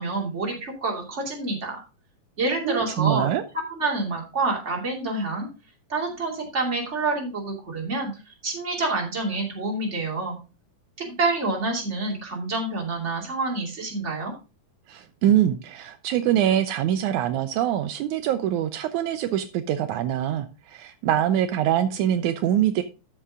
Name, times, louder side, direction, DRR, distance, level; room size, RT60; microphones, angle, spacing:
voice 1, 0.0-1.8 2.4-3.3 3.7-5.5 5.9-8.1 8.4-10.4 11.0-14.3, right 3 dB, 25° right, -1 dB, 2.8 m, -27 dB
voice 2, 2.6-3.4 14.9-22.8, right 11 dB, 80° right, 9 dB, 2.0 m, -24 dB
13.0 x 5.6 x 3.7 m, 0.31 s
omnidirectional pair, 3.6 m